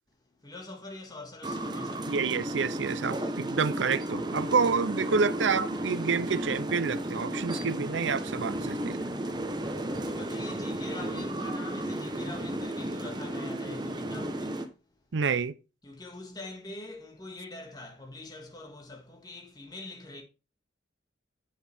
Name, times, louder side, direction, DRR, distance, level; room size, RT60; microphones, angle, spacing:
voice 1, 0.4-2.4 3.1-3.3 7.5-8.0 8.7-8.8 9.6-14.7 15.8-20.2, left 2 dB, 20° left, 1.8 m, -44 dB
sound 1, 1.4-14.7, right 1 dB, 20° right, 1.0 m, -34 dB
voice 2, 2.1-9.1 15.1-15.5, right 5 dB, 75° right, 0.6 m, -28 dB
8.3 x 7.7 x 3.5 m
head